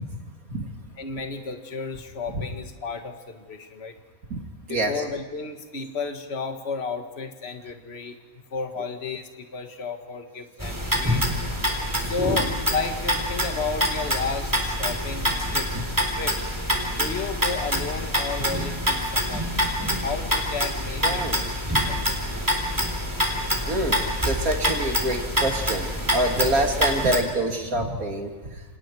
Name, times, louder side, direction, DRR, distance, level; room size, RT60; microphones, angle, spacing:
voice 1, 1.0-4.0 4.7-8.2 8.5-11.2 12.0-15.7 16.2-16.4 16.9-19.5 20.0-21.3 21.9-22.0, left 4 dB, 45° left, 5 dB, 1.9 m, -32 dB
voice 2, 4.7-5.0 12.3-12.4 15.7-15.8 21.0-21.4 23.7-24.0 24.3-28.6, right 1 dB, 75° right, 2 dB, 3.4 m, -26 dB
sound 1, 10.6-27.2, equal, 15° right, 4.0 m, -26 dB
29.5 x 27.0 x 4.8 m, 1.3 s
omnidirectional pair, 1.5 m